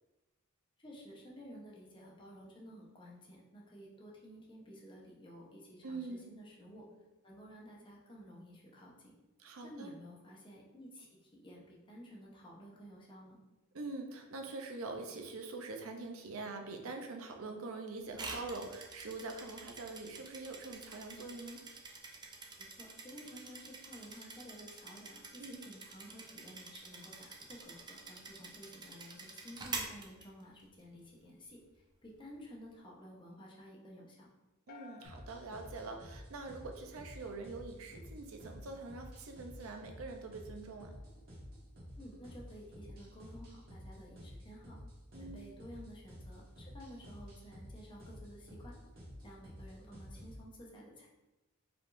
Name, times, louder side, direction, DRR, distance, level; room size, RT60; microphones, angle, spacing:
voice 1, 0.8-6.9 7.2-9.1 9.6-13.4 22.6-34.3 42.0-44.8 45.2-48.7 49.2-51.1, equal, 25° left, -3 dB, 0.9 m, -53 dB
voice 2, 5.8-6.3 9.4-9.9 13.7-21.6 25.4-25.7 34.7-40.9 45.1-45.5, right 3 dB, 75° right, 4 dB, 0.6 m, -44 dB
sound 1, 18.1-30.8, right 3 dB, 20° right, 0.5 m, -47 dB
sound 2, 34.7-36.9, left 7 dB, 45° left, 0.3 m, -58 dB
sound 3, 35.0-50.4, equal, 45° right, 1.3 m, -51 dB
4.6 x 3.5 x 2.6 m, 1.0 s
head